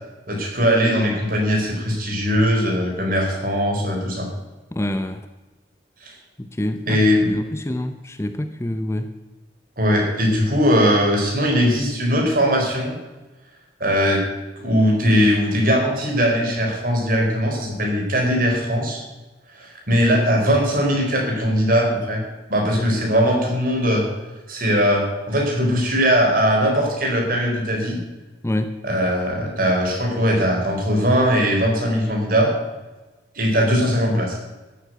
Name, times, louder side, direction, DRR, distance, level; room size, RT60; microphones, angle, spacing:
voice 1, 0.3-4.3 6.0-6.1 6.9-7.3 9.8-12.9 13.8-14.2 14.6-19.0 19.6-22.2 22.5-24.1 24.5-28.0 28.8-32.5 33.4-34.4, equal, 50° right, 0 dB, 4.4 m, -20 dB
voice 2, 4.7-5.3 6.4-9.1 22.7-22.9 28.4-28.8, left 1 dB, 15° left, 9 dB, 0.6 m, -27 dB
13.5 x 8.5 x 9.4 m, 1.2 s
head